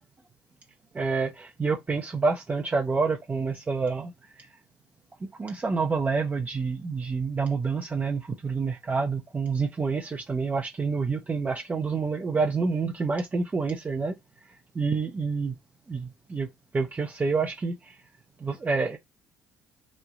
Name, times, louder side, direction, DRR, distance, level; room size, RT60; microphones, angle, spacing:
voice 1, 0.9-4.1 5.4-14.1 14.7-15.5 15.9-16.5 16.7-17.9 18.4-19.0, right 4 dB, 25° right, 0.6 m, -28 dB
3.1 x 2.1 x 3.7 m
hypercardioid pair, 60°, 6 cm